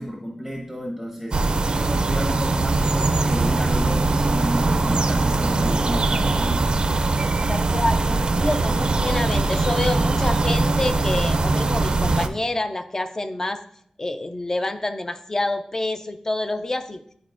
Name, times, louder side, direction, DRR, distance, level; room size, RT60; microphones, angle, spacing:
voice 1, 0.0-6.8, equal, 10° left, 0 dB, 1.0 m, -31 dB
sound 1, 1.3-12.3, right 3 dB, 50° right, 0.4 m, -21 dB
voice 2, 7.5-13.6 14.0-17.0, left 2 dB, 25° left, 9 dB, 0.5 m, -27 dB
11.0 x 4.2 x 2.5 m, 0.66 s
wide cardioid pair, 100°, 2 cm